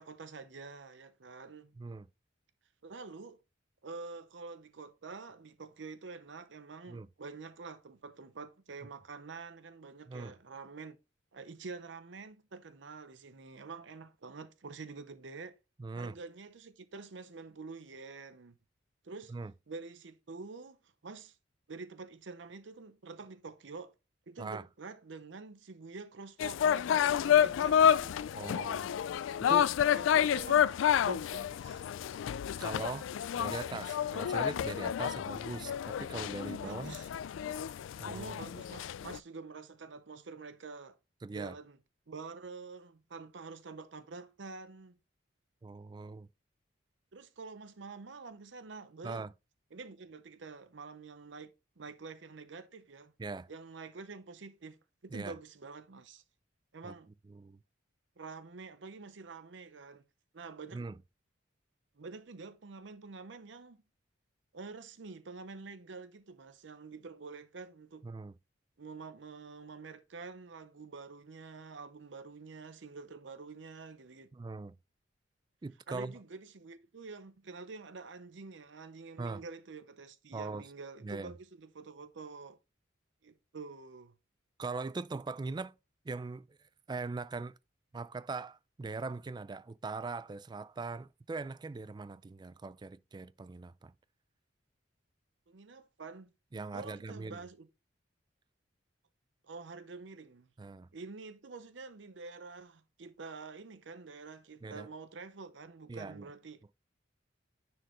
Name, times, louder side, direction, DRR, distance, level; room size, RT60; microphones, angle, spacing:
voice 1, 0.0-1.8 2.8-3.4 3.8-11.0 11.3-15.6 16.0-18.6 19.0-19.4 19.7-21.4 21.7-23.9 24.3-28.2 29.9-31.8 36.6-37.1 38.0-41.0 41.3-41.8 42.1-45.0 47.1-49.3 49.7-53.1 53.5-56.2 56.7-57.1 58.2-60.0 60.3-60.8 62.0-63.8 64.5-68.1 68.8-74.3 75.9-82.6 83.2-84.1 95.5-96.3 96.7-97.7 99.4-100.5 100.9-106.6, right 4 dB, 65° right, 0.7 m, -47 dB
voice 2, 1.8-2.1 6.9-7.1 10.1-10.4 15.8-16.2 19.3-19.5 24.4-24.6 28.3-28.9 29.4-29.7 32.6-33.1 33.4-37.0 38.0-38.4 41.2-41.6 45.6-46.3 49.0-49.3 53.2-53.5 55.1-55.4 56.8-57.0 57.3-57.6 60.7-61.0 68.0-68.3 74.3-74.8 75.6-76.1 79.2-79.4 80.3-80.7 81.0-81.3 84.6-85.7 86.0-86.6 86.9-87.6 87.9-93.9 96.5-97.4 100.6-100.9 104.6-104.9 105.9-106.3, right 3 dB, 20° right, 0.3 m, -41 dB
sound 1, 26.4-39.2, left 9 dB, 80° left, 0.3 m, -29 dB
9.9 x 4.5 x 3.0 m
head